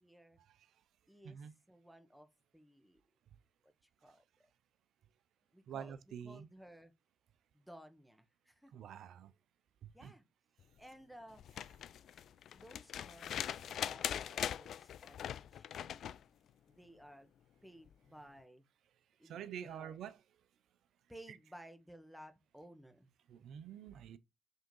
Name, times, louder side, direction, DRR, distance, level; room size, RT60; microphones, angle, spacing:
voice 1, 0.0-0.4 1.1-3.0 3.6-3.7 4.0-4.2 5.5-6.9 7.5-8.7 9.9-10.2 10.8-11.4 12.5-16.1 16.7-17.3 17.6-18.6 19.2-20.0 21.1-23.1, equal, ahead, 1.5 m, -57 dB
voice 2, 5.7-6.5 8.7-9.3 10.0-10.1 19.2-20.1 23.3-24.2, right 9 dB, 70° right, 0.6 m, -47 dB
sound 1, 11.4-16.2 17.9-18.0, left 10 dB, 65° left, 0.3 m, -41 dB
5.4 x 3.7 x 5.4 m
supercardioid pair, 55°, 0 cm